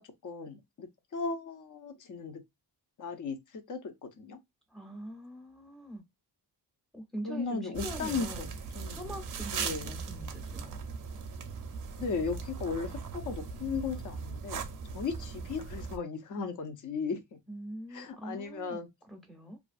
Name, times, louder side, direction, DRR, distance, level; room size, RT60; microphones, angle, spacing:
voice 1, 0.0-2.4 3.0-4.4 7.2-8.3 8.7-9.0 9.5-9.9 12.0-14.6 14.9-17.4 17.9-18.9, left 4 dB, 50° left, 0.6 m, -36 dB
voice 2, 4.7-6.0 6.9-8.6 8.9-10.8 17.5-19.6, right 1 dB, ahead, 0.6 m, -43 dB
sound 1, 7.7-16.0, right 5 dB, 50° right, 0.5 m, -39 dB
2.5 x 2.3 x 2.4 m
wide cardioid pair, 165°, 41 cm